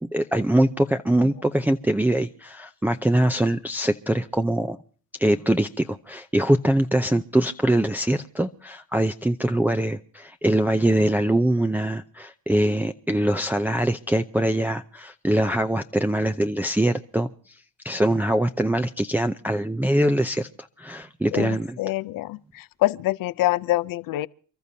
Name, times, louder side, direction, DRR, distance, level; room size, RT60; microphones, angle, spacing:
voice 1, 0.0-4.8 5.2-17.3 17.8-21.8, right 1 dB, 5° right, 0.6 m, -23 dB
voice 2, 21.3-24.3, left 16 dB, 65° left, 0.6 m, -26 dB
29.0 x 13.5 x 2.8 m
supercardioid pair, 70°, 36 cm